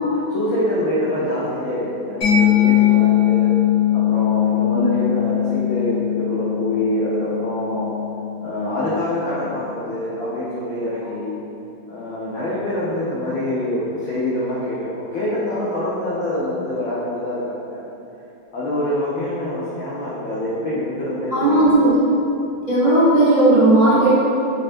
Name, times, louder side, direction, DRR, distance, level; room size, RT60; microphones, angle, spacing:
voice 1, 0.3-3.5 3.9-7.9 8.4-11.3 11.9-17.8 18.5-21.7, left 1 dB, 90° left, -8 dB, 0.7 m, -25 dB
Mallet percussion, 2.2-9.6, left 11 dB, 40° left, 1.1 m, -20 dB
voice 2, 21.3-22.0 22.7-24.1, right 2 dB, 55° right, -13 dB, 0.4 m, -15 dB
4.3 x 2.1 x 2.5 m, 2.8 s
omnidirectional pair, 2.1 m